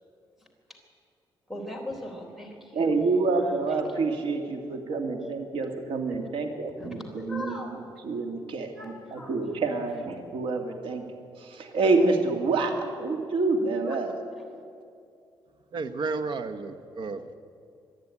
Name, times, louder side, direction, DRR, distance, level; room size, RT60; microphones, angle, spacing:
voice 1, 1.5-2.9 3.7-3.8 5.2-5.3 6.8-7.7 8.8-9.3, left 1 dB, 5° right, 3.7 m, -39 dB
voice 2, 2.7-11.0 11.4-14.1, right 3 dB, 80° right, 2.4 m, -27 dB
voice 3, 15.7-17.2, right 4 dB, 60° right, 1.2 m, -32 dB
25.5 x 10.5 x 9.8 m
cardioid pair, 135°, 9 cm